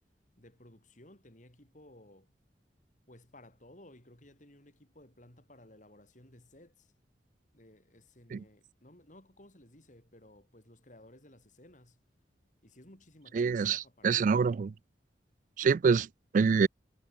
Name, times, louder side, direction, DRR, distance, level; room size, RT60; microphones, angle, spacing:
voice 1, 0.4-2.3 3.1-6.9 7.5-12.0 12.6-14.3, left 1 dB, 45° left, 4.5 m, -57 dB
voice 2, 13.3-14.7 15.6-16.1 16.3-16.7, right 5 dB, 45° right, 0.3 m, -25 dB
head